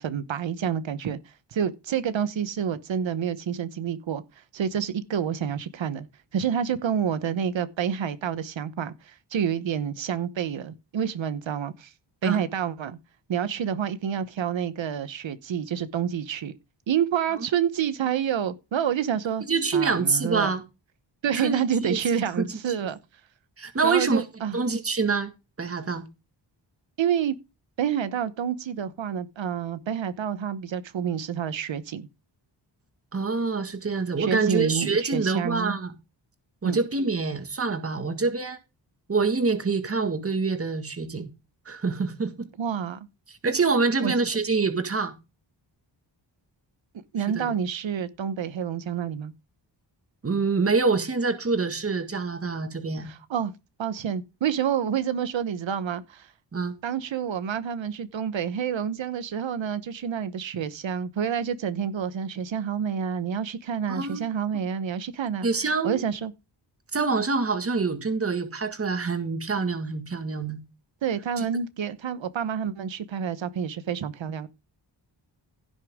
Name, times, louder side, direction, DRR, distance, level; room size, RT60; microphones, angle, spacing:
voice 1, 0.0-6.1 6.3-11.9 12.2-13.0 13.3-16.5 16.9-19.4 19.7-20.5 21.2-23.0 23.8-24.6 27.0-27.3 27.8-32.1 34.2-35.7 36.6-36.8 42.6-43.1 44.0-44.1 47.1-49.3 53.0-53.5 53.8-56.3 56.8-65.5 65.8-66.3 71.0-74.5, right 8 dB, 80° right, 1.1 m, -28 dB
voice 2, 19.5-20.6 21.3-22.0 22.3-22.8 23.6-24.2 24.5-25.3 25.6-26.0 33.1-35.9 36.6-38.6 39.1-41.3 41.6-42.5 43.3-45.1 47.3-47.5 50.2-53.1 56.5-56.7 63.9-64.2 65.4-66.0 66.9-70.6 71.4-71.5, right 4 dB, 30° right, 1.8 m, -26 dB
16.0 x 6.5 x 3.6 m
wide cardioid pair, 165°, 45 cm